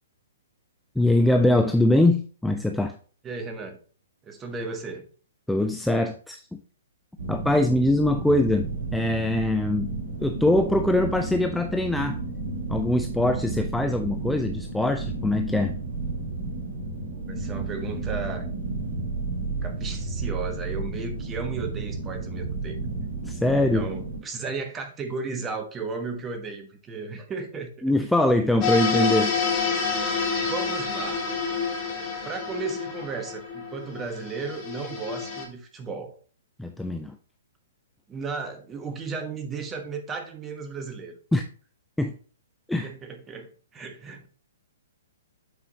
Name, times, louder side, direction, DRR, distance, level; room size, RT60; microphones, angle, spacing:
voice 1, 1.0-3.0 5.5-6.6 7.3-9.9 10.2-12.2 12.7-15.8 23.2-23.9 27.8-29.4 36.6-37.1 41.3-41.4 42.0-42.2 42.7-42.9, left 1 dB, 5° left, 0.4 m, -23 dB
voice 2, 3.2-3.8 4.2-5.0 17.3-18.5 19.6-22.8 23.7-27.7 30.4-31.2 32.2-36.2 38.1-41.2 42.8-44.3, right 4 dB, 20° right, 1.2 m, -35 dB
sound 1, 7.2-24.2, right 3 dB, 80° right, 3.0 m, -32 dB
sound 2, 28.6-35.4, left 5 dB, 30° left, 2.2 m, -28 dB
8.1 x 4.9 x 2.8 m
hypercardioid pair, 125°, 0 cm